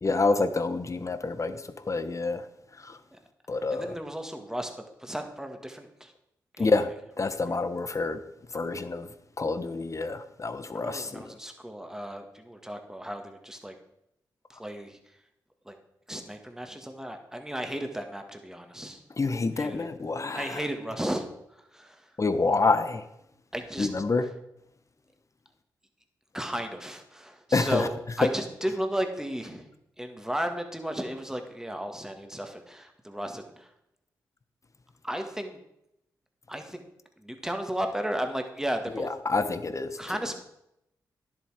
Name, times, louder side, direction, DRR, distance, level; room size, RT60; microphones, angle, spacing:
voice 1, 0.0-2.5 2.7-3.0 3.5-4.0 6.6-8.2 8.5-11.3 19.2-20.6 22.2-23.0 23.8-24.3 27.5-27.9 28.2-28.3 38.9-40.0, left 3 dB, 40° left, 11 dB, 1.0 m, -28 dB
voice 2, 3.7-4.7 5.0-6.1 6.6-6.7 10.7-13.7 14.5-15.0 15.6-15.8 16.1-19.0 19.6-19.9 20.3-22.1 23.5-23.9 26.3-29.7 30.0-33.7 35.0-35.6 36.5-36.8 37.2-39.1 40.0-40.4, equal, 5° right, 5 dB, 1.8 m, -34 dB
10.5 x 7.4 x 4.9 m, 0.82 s
supercardioid pair, 40°, 8 cm